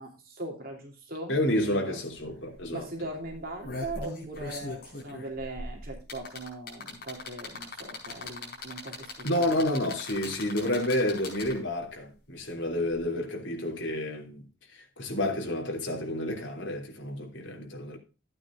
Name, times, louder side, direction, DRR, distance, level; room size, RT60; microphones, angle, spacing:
voice 1, 0.0-2.0 2.7-9.6, right 2 dB, 50° right, 3.0 m, -40 dB
voice 2, 1.3-2.9 9.2-18.0, left 1 dB, 75° left, 2.9 m, -30 dB
sound 1, 2.1-2.2 2.5-2.8 3.3-11.8 12.9-13.0, left 2 dB, 50° left, 4.7 m, -40 dB
13.5 x 8.9 x 2.5 m
head